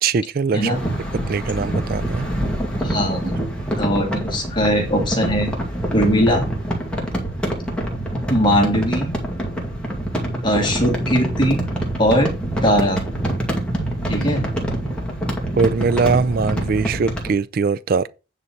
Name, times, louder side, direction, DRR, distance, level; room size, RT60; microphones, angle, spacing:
voice 1, 0.0-0.7 1.3-2.3 15.6-18.1, right 5 dB, 45° right, 0.3 m, -21 dB
sound 1, 0.6-17.3, right 1 dB, 5° left, 2.0 m, -25 dB
voice 2, 2.8-3.3 3.8-5.5 5.9-6.5 8.3-9.2 10.4-11.6 12.0-12.3 12.6-13.0 14.1-14.5, equal, 20° left, 2.1 m, -19 dB
9.5 x 4.1 x 5.8 m
head